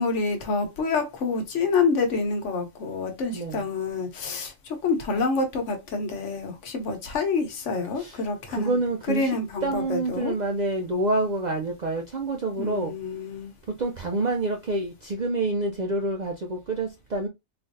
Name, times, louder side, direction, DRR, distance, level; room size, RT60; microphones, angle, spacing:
voice 1, 0.0-8.8 9.1-10.3 12.6-13.5, left 4 dB, 75° left, 1.2 m, -27 dB
voice 2, 3.3-3.6 8.0-8.2 8.5-9.4 9.6-12.9 13.7-17.3, right 2 dB, 60° right, 0.4 m, -27 dB
3.7 x 2.5 x 2.6 m
omnidirectional pair, 1.3 m